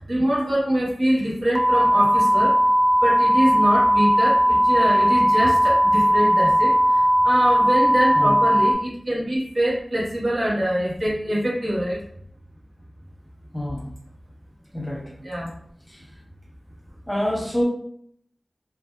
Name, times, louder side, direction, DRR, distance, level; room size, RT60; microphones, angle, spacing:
voice 1, 0.1-2.5 3.0-12.0 15.2-15.5, right 1 dB, 70° right, -5 dB, 1.1 m, -24 dB
sound 1, 1.5-8.7, equal, 20° right, 0.4 m, -18 dB
voice 2, 13.5-13.9 14.7-15.1 15.9-16.1 17.1-17.6, left 1 dB, 10° left, -2 dB, 0.9 m, -27 dB
3.3 x 2.3 x 2.6 m, 0.67 s
wide cardioid pair, 45°, 0 cm